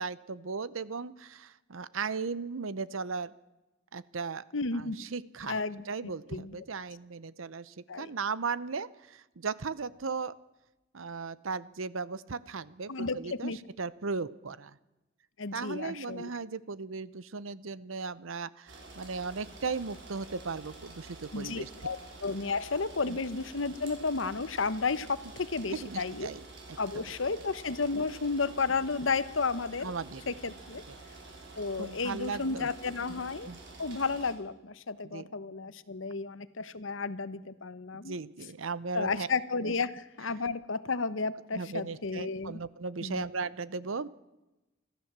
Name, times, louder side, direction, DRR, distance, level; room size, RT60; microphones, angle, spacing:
voice 1, 0.0-3.3 3.9-4.4 4.7-5.6 5.9-10.3 10.9-14.8 15.5-21.7 23.1-23.2 25.7-26.4 26.7-26.8 27.0-27.1 29.8-30.3 30.9-31.0 31.8-32.7 33.5-33.6 35.0-35.3 37.9-39.3 39.6-39.7 41.5-44.1, right 4 dB, 85° right, 18 dB, 0.8 m, -37 dB
voice 2, 4.5-5.0 5.5-6.5 7.9-8.1 12.9-13.6 15.4-16.3 21.3-26.3 26.8-29.9 30.3-30.8 31.6-33.5 33.8-38.2 38.9-42.6 43.0-43.2, left 4 dB, 75° left, 15 dB, 1.0 m, -32 dB
sound 1, 18.7-34.3, right 3 dB, 65° right, 6.2 m, -49 dB
24.5 x 14.5 x 7.4 m, 1.0 s
head